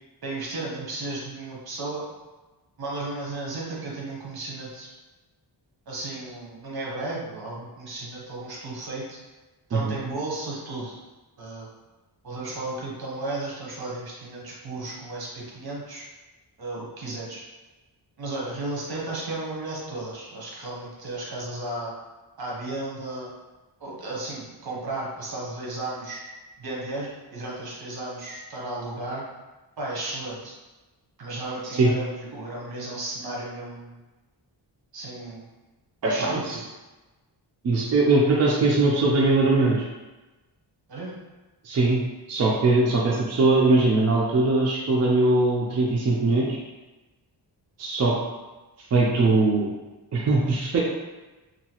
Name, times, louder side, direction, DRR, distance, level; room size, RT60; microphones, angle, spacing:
voice 1, 0.2-2.1 2.8-4.9 5.9-9.2 9.7-11.0 11.4-11.7 12.2-16.0 16.6-17.4 18.2-21.9 22.4-23.3 23.8-26.2 26.6-29.2 29.8-30.5 31.2-34.0 34.9-35.5 36.0-36.6 40.9-41.2, right 2 dB, 60° right, -4 dB, 0.9 m, -34 dB
voice 2, 36.0-36.6 37.6-39.8 41.6-42.0 42.3-46.6 47.8-48.2 48.9-49.7 50.1-50.8, right 2 dB, 40° right, -3 dB, 0.4 m, -21 dB
2.8 x 2.3 x 2.9 m, 1.2 s
wide cardioid pair, 125°, 42 cm